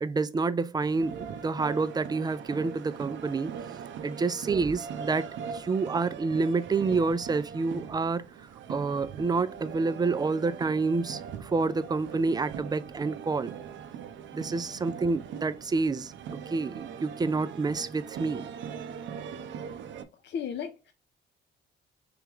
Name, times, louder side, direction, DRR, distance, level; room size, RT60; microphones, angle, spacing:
voice 1, 0.0-3.5 4.0-8.2 8.7-13.6 14.3-16.1 16.5-18.5, right 4 dB, 20° right, 0.4 m, -28 dB
sound 1, 0.8-20.0, right 7 dB, 70° right, 0.5 m, -41 dB
voice 2, 19.8-20.9, left 7 dB, 60° left, 0.6 m, -37 dB
3.5 x 3.1 x 3.4 m
cardioid pair, 90°, 20 cm